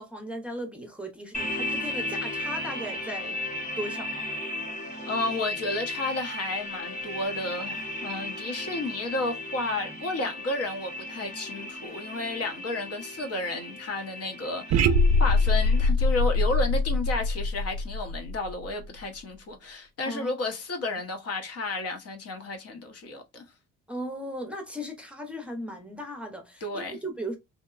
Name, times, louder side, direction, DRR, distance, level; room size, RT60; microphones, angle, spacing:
voice 1, 0.0-3.4 3.8-4.1 20.0-20.5 20.9-21.0 23.9-27.4, equal, 5° right, 0.6 m, -37 dB
sound 1, 1.3-15.9, left 1 dB, 25° left, 0.9 m, -35 dB
voice 2, 5.0-23.4 26.6-27.0, left 2 dB, 55° left, 0.8 m, -32 dB
sound 2, 14.7-18.8, left 2 dB, 55° right, 0.4 m, -23 dB
2.8 x 2.1 x 2.3 m
cardioid pair, 90°, 30 cm